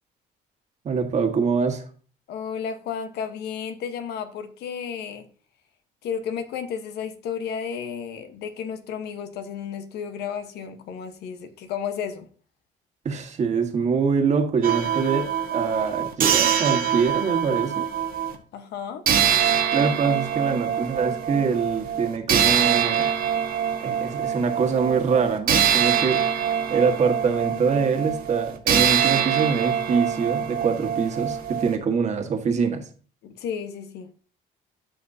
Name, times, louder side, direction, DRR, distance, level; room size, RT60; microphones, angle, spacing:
voice 1, 0.8-1.9 13.0-17.8 19.7-23.1 23.8-26.3 26.7-32.9, right 5 dB, 45° right, 1.7 m, -24 dB
voice 2, 2.3-5.3 6.0-12.3 18.5-19.0 33.2-34.1, left 7 dB, 75° left, 1.2 m, -32 dB
sound 1, 14.6-18.4 19.1-31.8, right 9 dB, 60° right, 1.4 m, -24 dB
12.5 x 5.7 x 2.8 m
cardioid pair, 110°, 17 cm